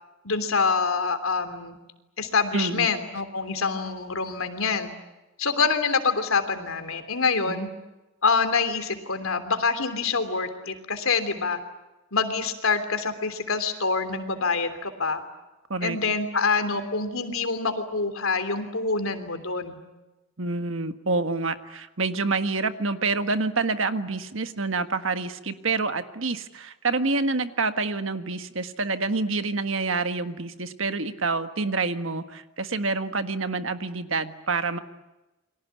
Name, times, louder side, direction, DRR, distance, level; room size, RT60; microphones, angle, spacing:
voice 1, 0.2-1.8 2.2-4.9 5.4-7.7 8.2-11.6 12.1-15.2 15.8-19.8, left 4 dB, 75° left, 9 dB, 3.2 m, -26 dB
voice 2, 2.5-2.9 7.5-7.6 15.7-16.0 20.4-34.8, right 3 dB, 65° right, 9 dB, 1.6 m, -27 dB
29.0 x 23.5 x 8.4 m, 1.0 s
head